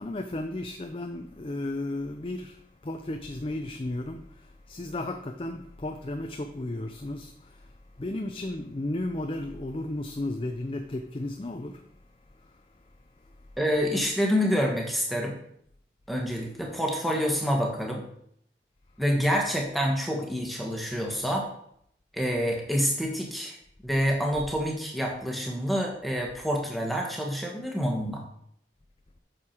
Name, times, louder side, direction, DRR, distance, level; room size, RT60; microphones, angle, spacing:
voice 1, 0.0-7.7 8.0-11.8 12.4-12.5, left 1 dB, 30° left, 5 dB, 0.5 m, -34 dB
voice 2, 13.6-15.4 16.1-18.0 19.0-21.5 22.1-23.6 23.8-28.2, equal, ahead, 0 dB, 1.5 m, -27 dB
8.5 x 6.6 x 4.4 m, 0.68 s
head